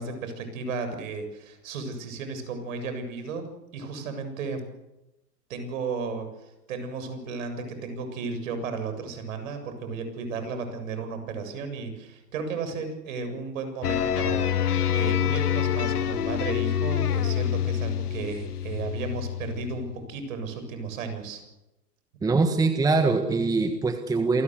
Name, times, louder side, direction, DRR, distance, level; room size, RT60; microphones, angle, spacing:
voice 1, 0.0-3.5 3.7-4.6 5.5-6.3 6.7-14.5 14.9-21.4, right 4 dB, 55° right, 8 dB, 7.4 m, -34 dB
sound 1, 13.8-20.0, left 9 dB, 65° left, 1.2 m, -26 dB
voice 2, 22.2-24.4, right 3 dB, 5° right, 8 dB, 1.4 m, -23 dB
28.0 x 20.0 x 7.9 m, 0.96 s
figure-of-eight pair, 110°, 48 cm